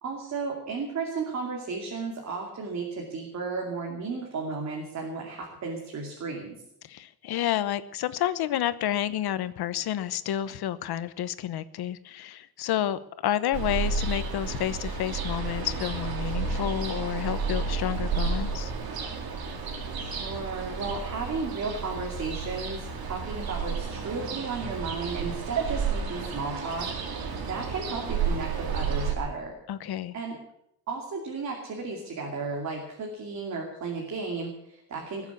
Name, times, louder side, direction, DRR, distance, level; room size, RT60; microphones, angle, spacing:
voice 1, 0.0-6.6 19.9-26.9 27.4-29.6 30.1-30.4 30.9-35.3, right 4 dB, 50° right, 0 dB, 2.7 m, -34 dB
voice 2, 6.8-18.7 29.7-30.1, left 11 dB, 90° left, 14 dB, 1.0 m, -30 dB
Ocean, 13.5-29.1, right 5 dB, 75° right, 2.8 m, -31 dB
20.5 x 7.3 x 8.3 m, 0.79 s
wide cardioid pair, 175°, 37 cm